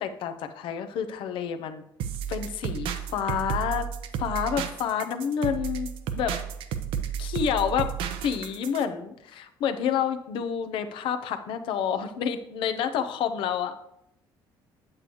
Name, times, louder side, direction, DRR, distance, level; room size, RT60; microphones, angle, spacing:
voice 1, 0.0-1.8 2.3-3.9 4.2-6.4 7.2-7.9 8.2-13.7, left 8 dB, 75° left, 9 dB, 0.8 m, -29 dB
sound 1, 2.0-8.8, right 8 dB, 80° right, 0.7 m, -32 dB
8.8 x 7.8 x 3.0 m, 0.79 s
cardioid pair, 120°, 9 cm